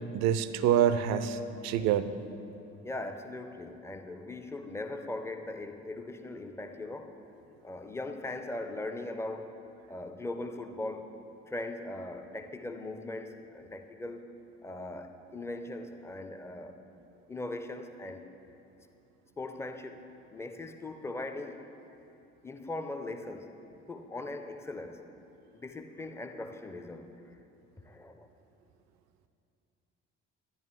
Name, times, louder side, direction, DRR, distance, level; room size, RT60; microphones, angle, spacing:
voice 1, 0.1-2.1, right 9 dB, 45° right, 12 dB, 0.5 m, -26 dB
voice 2, 2.8-7.2 7.6-9.5 9.9-11.1 11.5-14.3 14.6-16.8 17.3-18.3 19.4-20.0 20.3-21.6 22.4-23.5 23.9-25.0 25.5-27.1 27.8-28.3, left 2 dB, 5° left, 7 dB, 0.5 m, -39 dB
11.0 x 10.5 x 3.1 m, 2.8 s
figure-of-eight pair, 50°, 37 cm